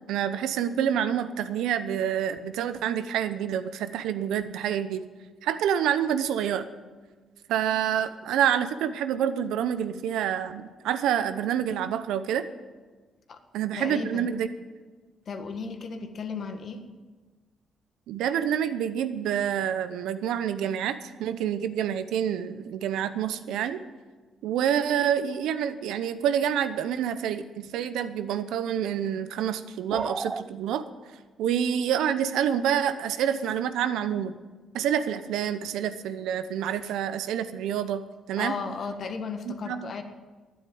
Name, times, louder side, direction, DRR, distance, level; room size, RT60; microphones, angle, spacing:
voice 1, 0.1-5.0 5.4-6.7 7.5-12.5 13.5-14.5 18.1-23.8 24.4-30.8 31.4-34.3 34.7-38.0 38.3-38.5 39.5-39.9, right 9 dB, 85° right, 12 dB, 0.8 m, -27 dB
voice 2, 13.8-14.3 15.3-16.8 38.4-40.0, left 5 dB, 55° left, 7 dB, 1.6 m, -35 dB
sound 1, 29.9-30.5, right 3 dB, 25° right, 0.4 m, -31 dB
11.5 x 10.0 x 8.6 m, 1.3 s
cardioid pair, 90°, 0 cm